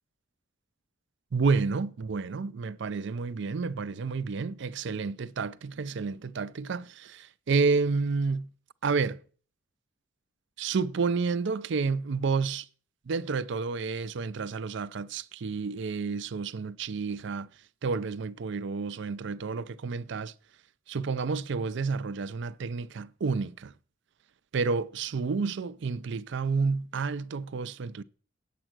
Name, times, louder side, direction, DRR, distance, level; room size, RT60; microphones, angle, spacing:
voice 1, 1.3-8.5 8.8-9.2 10.6-12.7 13.1-17.5 17.8-20.3 20.9-23.7 24.5-28.0, right 4 dB, 65° right, 0.5 m, -30 dB
8.9 x 7.4 x 6.1 m
head